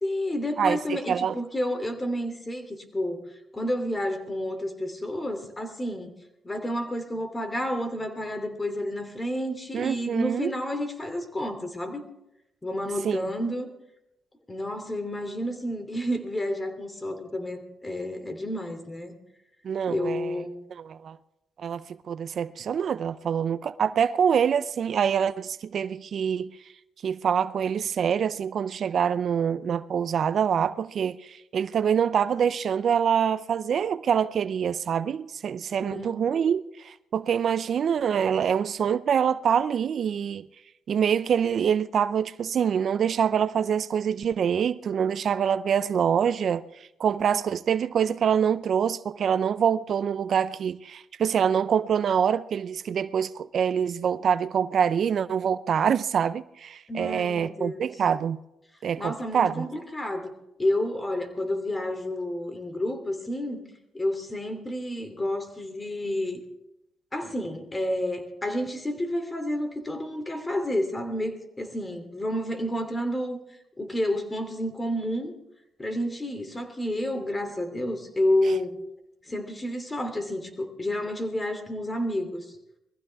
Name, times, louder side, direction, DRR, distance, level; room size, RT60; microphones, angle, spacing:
voice 1, 0.0-6.2 6.4-12.0 12.6-13.7 14.5-19.2 19.9-20.6 35.8-36.2 56.9-57.8 59.0-60.3 60.6-63.6 63.9-66.4 67.1-73.4 73.8-75.3 75.8-78.8 79.3-82.4, left 1 dB, 25° left, 2.9 m, -30 dB
voice 2, 0.6-1.3 9.7-10.5 13.0-13.2 19.6-20.4 20.8-21.2 21.6-26.6 27.0-40.5 40.9-46.6 47.0-58.4 58.8-59.7, right 7 dB, 65° right, 0.5 m, -25 dB
22.0 x 15.0 x 3.5 m
cardioid pair, 70°, 0 cm